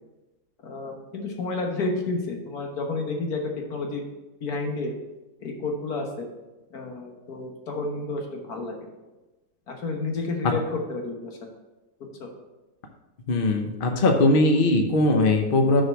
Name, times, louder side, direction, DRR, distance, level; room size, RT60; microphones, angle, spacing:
voice 1, 0.6-4.0 4.4-4.9 5.4-6.3 6.7-8.8 9.7-11.4 12.2-12.3, left 3 dB, 70° left, 2 dB, 1.7 m, -30 dB
voice 2, 13.3-15.8, left 2 dB, 45° left, 4 dB, 0.8 m, -20 dB
6.4 x 4.7 x 6.1 m, 1.1 s
omnidirectional pair, 1.7 m